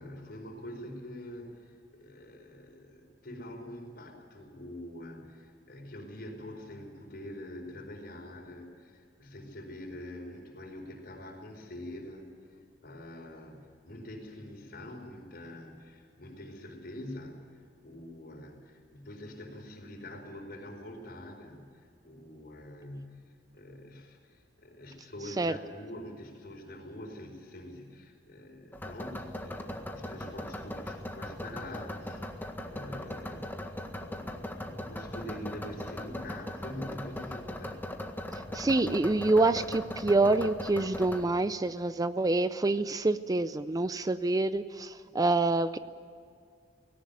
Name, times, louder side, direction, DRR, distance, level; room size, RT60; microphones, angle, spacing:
voice 1, 0.0-37.8, left 1 dB, 55° left, 2 dB, 4.9 m, -45 dB
sound 1, 28.7-41.2, left 1 dB, 10° left, 1.7 m, -39 dB
voice 2, 38.5-45.8, right 2 dB, 20° right, 13 dB, 0.5 m, -27 dB
18.0 x 18.0 x 9.3 m, 2.3 s
head